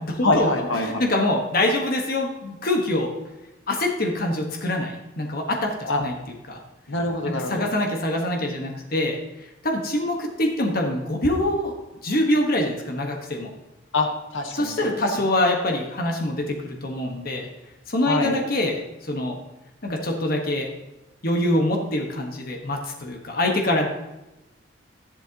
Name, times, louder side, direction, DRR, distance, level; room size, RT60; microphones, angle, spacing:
voice 1, 0.2-1.0 5.8-6.0 6.9-7.6 13.9-15.2 18.0-18.4, left 2 dB, 75° left, 3 dB, 1.5 m, -25 dB
voice 2, 0.8-3.1 3.7-6.1 6.5-6.6 7.2-9.2 9.6-11.7 12.0-13.5 14.5-17.5 17.9-19.4 19.8-20.7 21.2-23.9, left 1 dB, 45° left, 2 dB, 1.4 m, -24 dB
12.5 x 11.5 x 2.9 m, 0.99 s
head